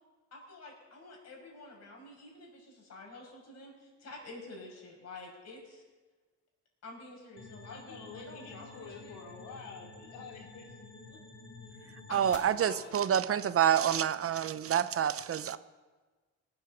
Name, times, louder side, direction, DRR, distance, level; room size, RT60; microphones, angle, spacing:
voice 1, 0.3-5.8 6.8-9.2 12.1-13.4, left 2 dB, 60° left, 0 dB, 6.0 m, -49 dB
sound 1, 7.4-12.4, left 3 dB, 40° left, 2.2 m, -50 dB
voice 2, 7.5-10.8 11.1-11.2, left 4 dB, 85° left, 0 dB, 2.9 m, -49 dB
voice 3, 12.1-15.6, right 9 dB, 50° right, 14 dB, 0.7 m, -28 dB
19.0 x 8.0 x 7.2 m, 1.3 s
cardioid pair, 90°, 30 cm